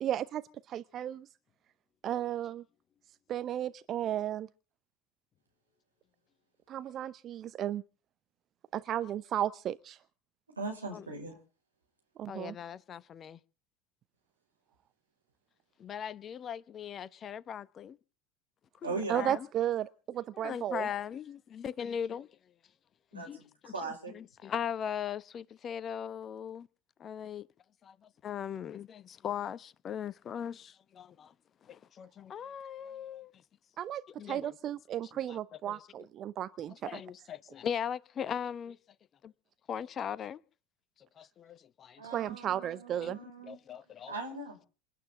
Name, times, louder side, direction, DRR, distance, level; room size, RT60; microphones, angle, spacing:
voice 1, 0.0-1.3 2.0-2.6 3.3-4.5 6.7-7.8 8.7-10.0 12.2-12.5 19.1-20.9 33.8-37.0 42.0-43.2, right 11 dB, 35° right, 0.7 m, -34 dB
voice 2, 10.6-11.4 18.8-19.4 23.1-24.1 42.0-43.6 44.1-44.7, right 3 dB, 80° right, 5.6 m, -39 dB
voice 3, 12.3-13.4 15.8-18.0 18.8-19.5 20.3-22.3 23.1-26.7 27.0-27.5 27.8-28.0 28.2-31.3 31.6-33.3 34.2-34.5 35.3-35.4 35.7-35.8 36.7-38.8 39.2-39.3 39.7-40.4 41.2-42.0 43.0-43.1 43.5-44.2, left 8 dB, 30° left, 0.9 m, -39 dB
27.5 x 12.0 x 3.8 m
figure-of-eight pair, 75°, 0 cm